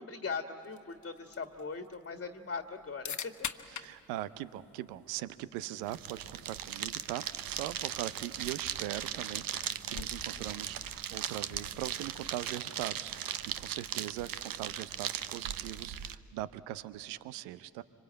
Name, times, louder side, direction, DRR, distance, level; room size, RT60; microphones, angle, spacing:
voice 1, 0.0-3.5, left 4 dB, 30° left, 6 dB, 1.7 m, -40 dB
sound 1, 0.6-12.6, left 7 dB, 45° left, 1.3 m, -48 dB
voice 2, 3.8-13.1 13.6-17.8, right 14 dB, 80° right, 16 dB, 0.7 m, -41 dB
sound 2, 5.8-16.1, right 10 dB, 60° right, 1.0 m, -38 dB
26.0 x 25.0 x 8.8 m, 2.5 s
hypercardioid pair, 40°, 39 cm